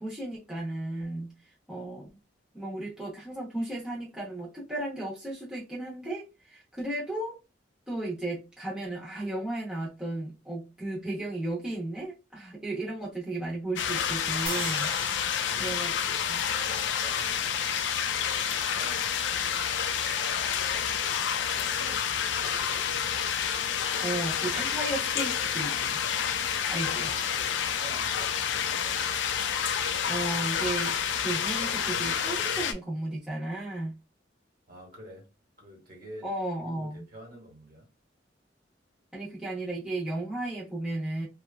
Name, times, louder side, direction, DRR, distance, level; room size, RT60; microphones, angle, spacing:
voice 1, 0.0-1.3 1.7-2.1 2.5-7.4 7.9-14.9 15.6-15.9 16.3-16.4 24.0-26.0 26.7-27.1 30.1-33.9 36.2-37.0 39.1-41.3, right 2 dB, 5° right, 0.8 m, -34 dB
culvert close, 13.8-32.7, left 8 dB, 70° left, 0.4 m, -29 dB
sound 1, 14.5-17.7, right 3 dB, 30° right, 0.5 m, -42 dB
voice 2, 15.1-19.7 20.2-22.7 26.9-27.4 27.8-29.3 34.7-35.3 35.6-36.3 36.6-37.9, right 1 dB, 50° right, 1.3 m, -49 dB
2.8 x 2.3 x 2.2 m
head